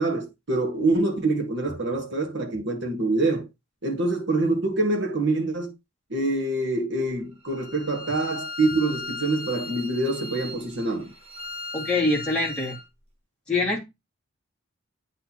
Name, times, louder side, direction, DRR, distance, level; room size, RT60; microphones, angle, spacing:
voice 1, 0.0-3.5 3.8-5.7 6.1-11.1, right 2 dB, 55° right, 1.5 m, -25 dB
Bowed string instrument, 7.4-12.8, left 3 dB, 30° right, 1.1 m, -37 dB
voice 2, 11.7-12.8 13.5-13.8, left 2 dB, 5° left, 2.0 m, -24 dB
9.0 x 4.1 x 2.9 m
head